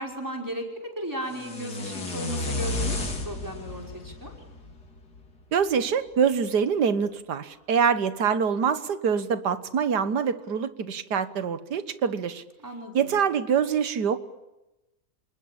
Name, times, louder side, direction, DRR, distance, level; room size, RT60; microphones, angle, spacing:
voice 1, 0.0-3.0 3.2-4.3 12.6-13.1, equal, 10° right, 1 dB, 5.2 m, -35 dB
sound 1, 1.3-5.4, left 2 dB, 80° left, 3.8 m, -32 dB
voice 2, 5.5-12.4 12.9-14.2, right 7 dB, 90° right, 13 dB, 1.9 m, -25 dB
28.0 x 20.0 x 8.6 m, 0.98 s
omnidirectional pair, 1.7 m